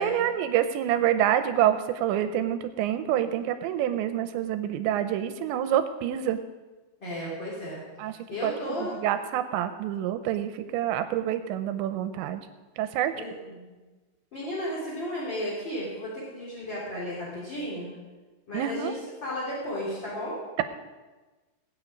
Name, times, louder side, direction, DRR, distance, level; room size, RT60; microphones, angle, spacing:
voice 1, 0.0-6.4 8.0-12.4 12.8-13.1 18.5-18.9, right 11 dB, 80° right, 9 dB, 2.8 m, -27 dB
voice 2, 7.0-7.8 8.3-8.9 13.1-13.7 14.3-17.9 18.5-20.4, equal, 25° left, -6 dB, 3.7 m, -34 dB
20.0 x 9.4 x 5.2 m, 1.2 s
omnidirectional pair, 5.4 m